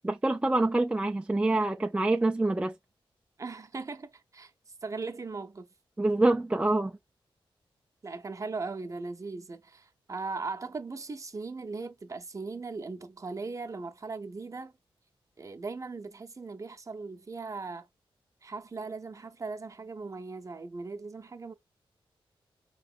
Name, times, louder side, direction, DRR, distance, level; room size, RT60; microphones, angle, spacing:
voice 1, 0.0-2.7 6.0-6.9, right 2 dB, 10° right, 0.3 m, -26 dB
voice 2, 3.4-4.5 4.8-5.7 8.0-14.7 15.4-17.9 18.4-21.5, right 4 dB, 35° right, 0.7 m, -38 dB
4.7 x 3.0 x 2.4 m
wide cardioid pair, 90°, 10 cm